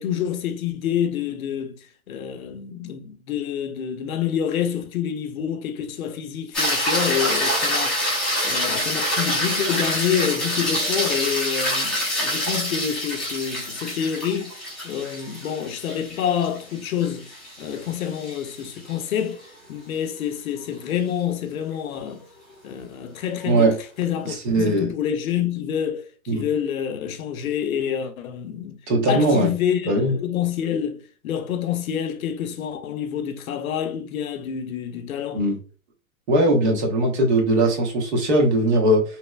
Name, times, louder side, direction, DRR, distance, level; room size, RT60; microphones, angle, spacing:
voice 1, 0.0-8.1 8.4-14.5 14.8-19.4 19.7-22.2 22.6-28.8 29.1-35.4, left 9 dB, 75° left, 0.6 m, -27 dB
sound 1, 6.5-18.9 23.4-23.5, equal, ahead, 0.5 m, -26 dB
voice 2, 24.2-24.9 26.3-26.4 28.9-29.5 29.9-30.1 35.3-35.6 36.3-39.0, right 1 dB, 50° right, 1.1 m, -19 dB
2.9 x 2.0 x 2.3 m
hypercardioid pair, 140°, 43 cm